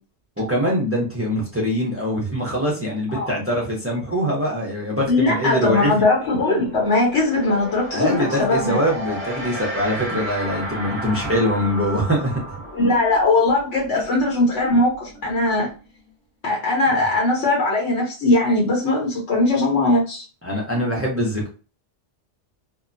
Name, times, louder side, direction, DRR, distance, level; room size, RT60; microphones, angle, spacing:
voice 1, 0.4-5.9 7.9-12.4 20.4-21.5, equal, 15° right, -2 dB, 0.6 m, -23 dB
voice 2, 5.1-8.8 12.7-15.7 16.4-20.2, left 2 dB, 75° left, -2 dB, 1.1 m, -20 dB
sound 1, 5.2-5.3 5.6-16.1, right 1 dB, 15° left, 0.8 m, -34 dB
2.8 x 2.1 x 2.5 m, 0.34 s
omnidirectional pair, 1.2 m